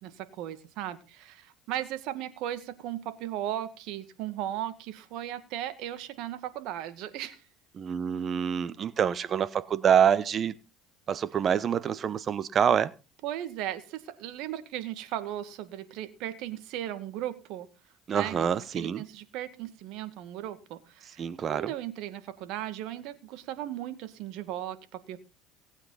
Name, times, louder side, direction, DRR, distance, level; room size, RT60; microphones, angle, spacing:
voice 1, 0.0-7.4 13.2-17.7 18.1-18.5 18.8-25.2, right 12 dB, 70° right, 2.1 m, -37 dB
voice 2, 7.7-10.5 11.1-12.9 18.1-19.0 21.2-21.7, right 8 dB, 40° right, 0.9 m, -26 dB
18.5 x 8.7 x 4.1 m
supercardioid pair, 95°, 0 cm